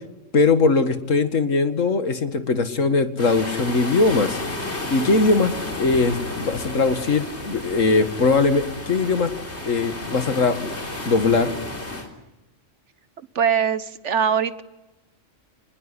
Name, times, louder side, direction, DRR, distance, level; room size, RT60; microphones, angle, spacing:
voice 1, 0.3-4.4 4.9-9.3 9.6-10.7 11.1-11.5, left 3 dB, 85° left, 10 dB, 2.2 m, -20 dB
sound 1, 3.2-12.1, left 2 dB, 60° left, 4.0 m, -32 dB
voice 2, 13.3-14.6, right 7 dB, 65° right, 14 dB, 1.5 m, -22 dB
27.5 x 21.0 x 9.8 m, 1.0 s
omnidirectional pair, 1.3 m